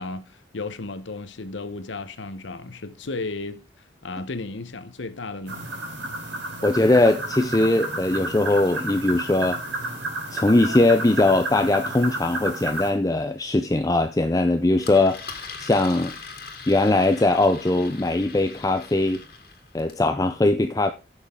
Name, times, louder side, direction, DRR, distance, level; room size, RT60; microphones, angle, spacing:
voice 1, 0.0-3.6 4.0-5.7, left 3 dB, 85° left, 1.0 m, -34 dB
sound 1, 5.5-12.9, right 2 dB, 85° right, 3.9 m, -31 dB
voice 2, 6.6-9.6 10.3-15.2 15.6-16.1 16.7-19.2 19.7-20.9, left 2 dB, 20° left, 0.5 m, -20 dB
Engine, 14.8-20.1, left 5 dB, 55° left, 2.2 m, -41 dB
15.0 x 6.4 x 3.7 m
head